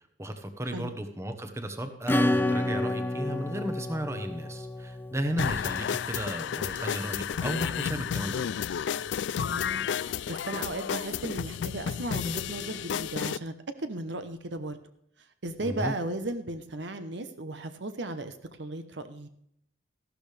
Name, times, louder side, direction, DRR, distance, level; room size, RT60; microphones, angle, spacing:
voice 1, 0.2-8.4 15.6-15.9, right 1 dB, 15° right, 7 dB, 1.1 m, -34 dB
Acoustic guitar / Strum, 2.1-6.4, left 1 dB, 10° left, 0.4 m, -30 dB
sound 1, 5.4-13.4, left 8 dB, 70° left, 0.3 m, -32 dB
voice 2, 9.4-13.5 13.8-14.8 15.4-19.3, right 2 dB, 70° right, 9 dB, 1.0 m, -36 dB
14.0 x 12.5 x 3.4 m, 0.72 s
head